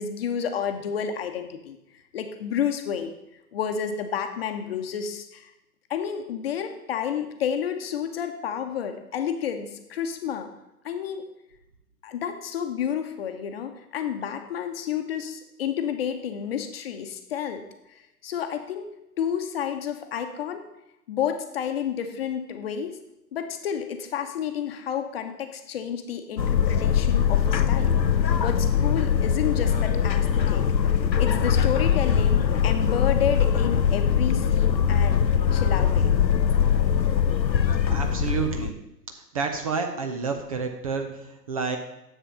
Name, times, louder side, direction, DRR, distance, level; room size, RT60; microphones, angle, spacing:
voice 1, 0.0-1.8 2.1-3.1 3.5-5.5 5.9-10.5 10.8-11.3 12.0-17.6 17.9-18.9 19.2-20.6 21.1-23.0 23.3-28.0 28.4-35.2 35.5-36.1, left 8 dB, 35° left, 6 dB, 1.0 m, -30 dB
sound 1, 26.4-38.7, left 8 dB, 90° left, 0.7 m, -22 dB
voice 2, 37.9-38.7 39.3-41.8, right 5 dB, 20° right, 5 dB, 0.6 m, -29 dB
10.0 x 7.4 x 5.1 m, 0.89 s
figure-of-eight pair, 120°, 50 cm